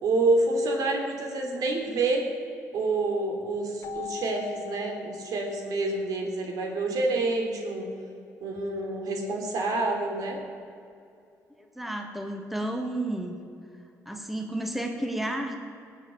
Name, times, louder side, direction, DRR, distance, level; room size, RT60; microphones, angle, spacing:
voice 1, 0.0-2.2 2.7-7.9 8.4-10.4, right 2 dB, 75° right, 2 dB, 2.9 m, -27 dB
Keyboard (musical), 3.8-6.4, left 11 dB, 75° left, 1.4 m, -42 dB
voice 2, 11.8-13.4 14.1-15.6, right 1 dB, 5° right, 3 dB, 1.8 m, -31 dB
19.0 x 7.6 x 7.5 m, 2.5 s
cardioid pair, 95°, 6 cm